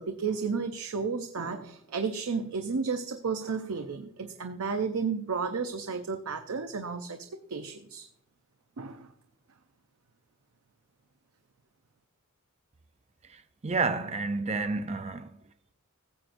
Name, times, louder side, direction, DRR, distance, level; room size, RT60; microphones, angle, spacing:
voice 1, 0.0-8.1 8.8-9.1, right 5 dB, 90° right, 0.6 m, -32 dB
voice 2, 13.2-15.4, right 3 dB, 30° right, 0.5 m, -30 dB
16.0 x 7.5 x 2.6 m
head